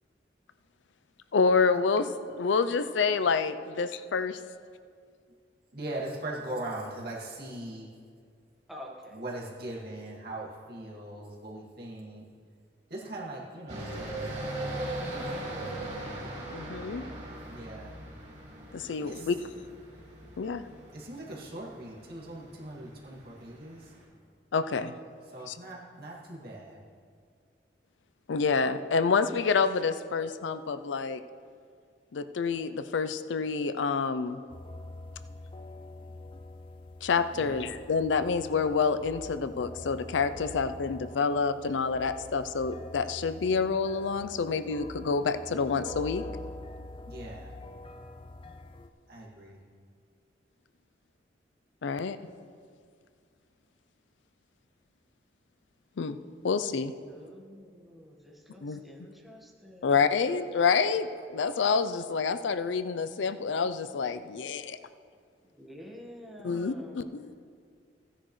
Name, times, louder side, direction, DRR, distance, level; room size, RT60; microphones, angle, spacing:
voice 1, 1.3-2.1 2.3-4.4 16.5-17.1 18.7-19.4 20.4-20.6 24.5-24.9 25.5-25.6 28.3-31.2 32.1-34.4 37.0-46.2 51.8-52.2 56.0-56.2 56.4-56.9 58.6-58.8 59.8-64.8 66.4-67.3, left 5 dB, 90° left, 12 dB, 0.5 m, -28 dB
voice 2, 5.7-7.9 9.1-12.2 12.9-14.2 15.1-15.4 17.5-17.9 18.9-19.3 20.9-23.9 25.3-26.8 37.4-37.7 47.1-47.5 49.1-49.6, right 1 dB, 60° right, -4 dB, 2.3 m, -40 dB
voice 3, 8.7-9.2 57.0-60.0 65.4-67.1, equal, ahead, -2 dB, 1.4 m, -48 dB
sound 1, 13.7-24.0, right 1 dB, 40° right, 2.8 m, -40 dB
sound 2, 34.5-48.9, left 2 dB, 30° left, 0.5 m, -45 dB
15.5 x 10.0 x 3.2 m, 2.2 s
head